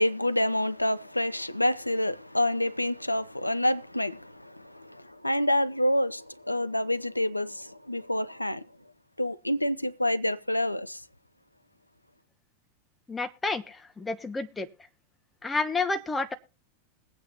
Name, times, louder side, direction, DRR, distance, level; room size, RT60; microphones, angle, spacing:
voice 1, 0.0-8.7 9.2-11.0, left 1 dB, 85° left, 0.5 m, -28 dB
voice 2, 13.1-14.7 15.4-16.3, left 3 dB, 10° left, 1.1 m, -30 dB
21.0 x 8.8 x 2.8 m
figure-of-eight pair, 90°, 0 cm